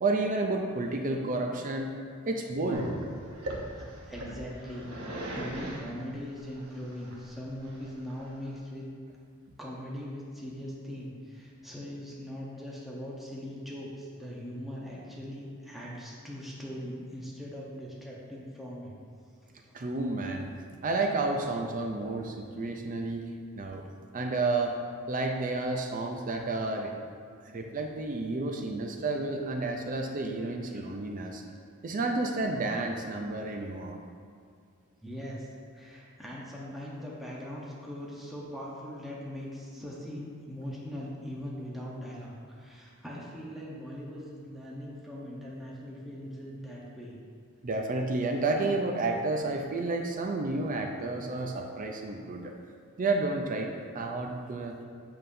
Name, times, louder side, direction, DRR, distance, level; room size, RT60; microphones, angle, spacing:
voice 1, 0.0-1.9 2.3-2.9 19.7-20.5 20.8-23.3 23.6-23.8 24.1-24.8 25.1-26.9 27.4-31.4 31.8-34.0 47.6-52.5 53.0-54.8, right 2 dB, 40° right, 3 dB, 0.5 m, -31 dB
Growling, 2.7-8.6, right 1 dB, 80° right, 1.0 m, -39 dB
voice 2, 3.8-8.8 9.6-19.0 19.4-19.8 24.2-24.3 27.5-27.6 30.6-30.8 35.0-47.2, equal, ahead, -6 dB, 0.9 m, -41 dB
7.5 x 6.8 x 2.7 m, 2.2 s
head